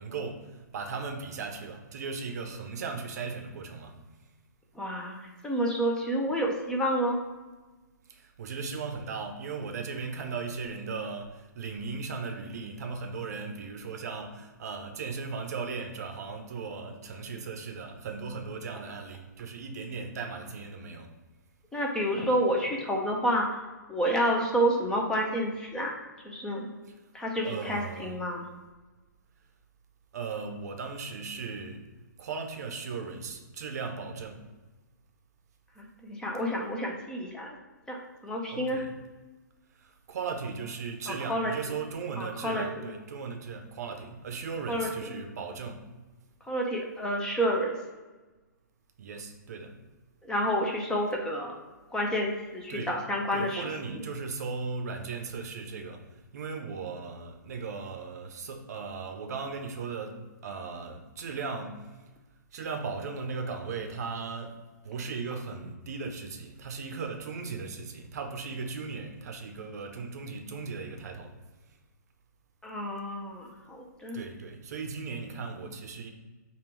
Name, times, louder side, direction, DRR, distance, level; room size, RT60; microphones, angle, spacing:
voice 1, 0.0-4.0 8.1-21.1 27.4-28.2 30.1-31.8 32.2-34.5 38.5-38.9 39.7-45.9 49.0-49.8 52.7-53.0 53.3-62.0 62.5-71.3 74.1-76.1, right 4 dB, 55° right, 0.6 m, -37 dB
voice 2, 4.8-5.2 5.4-7.2 21.7-23.5 23.9-25.9 26.2-26.7 27.1-28.4 35.8-37.6 37.9-38.8 41.1-41.5 42.2-42.9 44.7-44.9 46.5-47.8 50.2-51.6 51.9-53.7 72.6-74.2, equal, 5° left, 0.5 m, -29 dB
3.6 x 2.3 x 4.5 m
hypercardioid pair, 130°, 10 cm